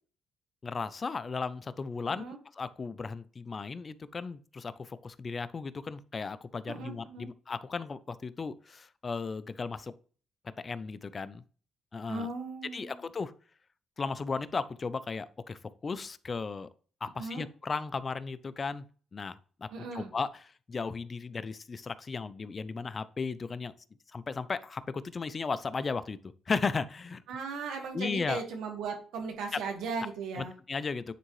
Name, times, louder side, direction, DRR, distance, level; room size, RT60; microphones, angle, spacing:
voice 1, 0.6-2.2 2.6-9.9 10.6-11.4 11.9-12.3 12.7-13.3 14.0-16.7 17.0-18.8 19.1-20.3 20.7-23.7 24.1-26.2 26.5-27.2 27.9-28.4 29.5-29.6 30.4-31.1, left 4 dB, 35° left, 0.4 m, -35 dB
voice 2, 2.0-2.4 6.7-7.3 12.1-13.1 17.2-17.4 19.7-20.1 27.3-30.5, right 4 dB, 85° right, 1.6 m, -37 dB
9.3 x 3.6 x 3.1 m
cardioid pair, 90°, 0 cm